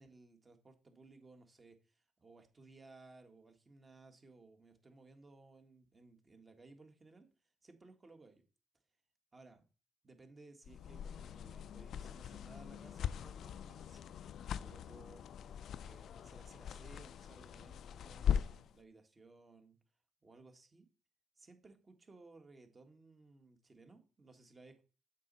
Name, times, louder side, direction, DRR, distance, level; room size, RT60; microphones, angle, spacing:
voice 1, 0.0-7.3 7.6-8.4 9.3-9.6 10.0-15.3 15.8-19.8 20.2-20.9 21.4-24.8, right 3 dB, 30° right, 6 dB, 1.6 m, -60 dB
sound 1, 10.6-18.7, left 8 dB, 70° left, 0.4 m, -41 dB
7.4 x 5.4 x 4.0 m, 0.34 s
cardioid pair, 90°, 0 cm